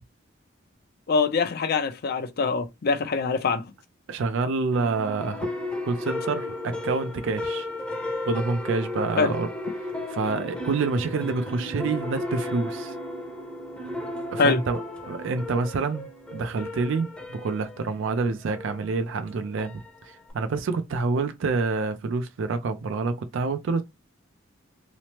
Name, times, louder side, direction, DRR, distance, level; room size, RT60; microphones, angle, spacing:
voice 1, 1.1-3.6 9.2-9.3 14.4-14.6, left 4 dB, 55° left, 0.5 m, -24 dB
voice 2, 4.1-5.5 5.9-7.7 8.3-9.5 10.1-12.9 14.3-23.8, right 4 dB, 70° right, 0.4 m, -27 dB
sound 1, 4.7-20.3, left 1 dB, 5° left, 0.6 m, -35 dB
3.0 x 2.0 x 2.8 m
head